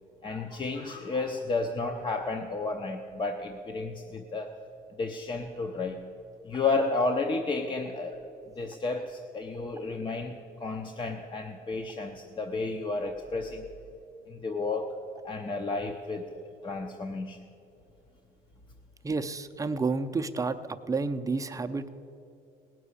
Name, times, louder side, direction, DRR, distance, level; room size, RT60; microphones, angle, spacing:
voice 1, 0.2-4.5 5.0-6.0 6.4-8.2 8.6-13.7 14.3-14.9 15.2-16.3 16.6-17.4, left 3 dB, 30° left, 4 dB, 0.8 m, -32 dB
voice 2, 19.0-21.9, right 4 dB, 20° right, 9 dB, 0.6 m, -30 dB
18.5 x 6.2 x 8.4 m, 2.7 s
cardioid pair, 110°, 17 cm